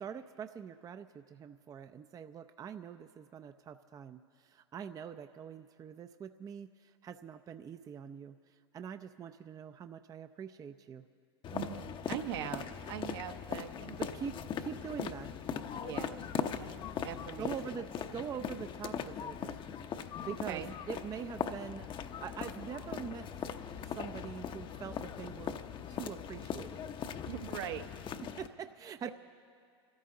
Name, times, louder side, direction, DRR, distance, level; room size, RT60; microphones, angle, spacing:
voice 1, 0.0-8.4 8.7-11.1 14.0-15.3 17.4-19.6 20.3-23.3 23.9-25.6 25.9-26.8 28.4-29.1, right 7 dB, 25° right, 9 dB, 0.5 m, -44 dB
sound 1, 11.4-28.5, left 8 dB, 35° left, 0.8 m, -40 dB
voice 2, 11.5-14.0 15.8-16.2 16.5-17.8 20.2-20.7 27.3-27.8 29.0-29.1, right 11 dB, 65° right, 7 dB, 1.1 m, -42 dB
27.0 x 13.5 x 3.8 m, 2.3 s
hypercardioid pair, 90°, 14 cm